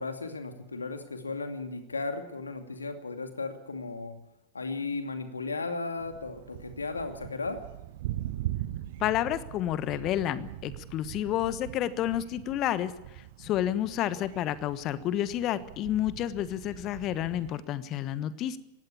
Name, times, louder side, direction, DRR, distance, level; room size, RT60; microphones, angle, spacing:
voice 1, 0.0-4.2 4.5-7.6, left 3 dB, 75° left, 6 dB, 2.5 m, -35 dB
Thunder, 6.0-17.6, right 14 dB, 55° right, 1.0 m, -41 dB
voice 2, 9.0-12.9 13.4-18.6, left 12 dB, 35° left, 15 dB, 1.2 m, -30 dB
19.5 x 16.0 x 8.5 m, 0.97 s
figure-of-eight pair, 90°, 0 cm